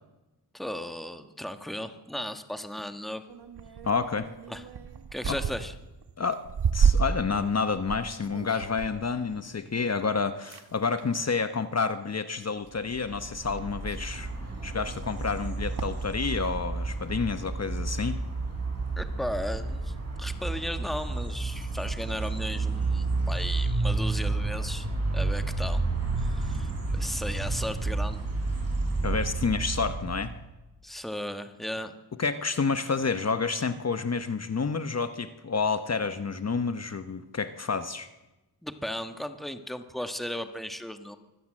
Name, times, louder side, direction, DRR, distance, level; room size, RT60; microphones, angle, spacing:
voice 1, 0.5-3.2 4.5-4.6 5.1-5.7 19.0-24.9 25.1-25.8 26.2-28.2 30.8-31.9 38.6-41.2, left 1 dB, ahead, 8 dB, 1.5 m, -36 dB
sound 1, 3.3-10.1 10.5-11.2 12.0-12.4 12.9-13.0 13.3-16.5, right 6 dB, 70° right, 1.7 m, -32 dB
voice 2, 3.9-4.3 5.3-5.4 6.2-6.5 6.7-14.3 14.6-18.2 29.0-30.3 32.2-38.1, left 5 dB, 40° left, 10 dB, 1.1 m, -29 dB
sound 2, 12.9-30.4, right 3 dB, 35° right, 8.0 m, -31 dB
24.0 x 16.5 x 7.7 m, 1.1 s
wide cardioid pair, 105°, 41 cm